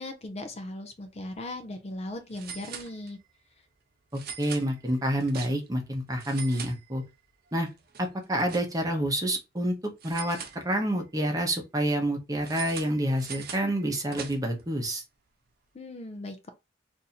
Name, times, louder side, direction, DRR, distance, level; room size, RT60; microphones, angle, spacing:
voice 1, 0.0-3.2 15.7-16.5, left 1 dB, 35° left, 0.5 m, -38 dB
sound 1, 1.2-1.4 1.6-1.7 2.3-3.4 4.1-5.8 6.1-7.3 7.7-9.0 10.0-11.1 12.4-14.7, right 7 dB, 55° right, 0.6 m, -43 dB
voice 2, 4.1-7.0 7.5-7.7 8.0-9.7 10.0-10.4 10.6-15.0, right 1 dB, 20° right, 0.8 m, -28 dB
2.7 x 2.6 x 4.1 m
head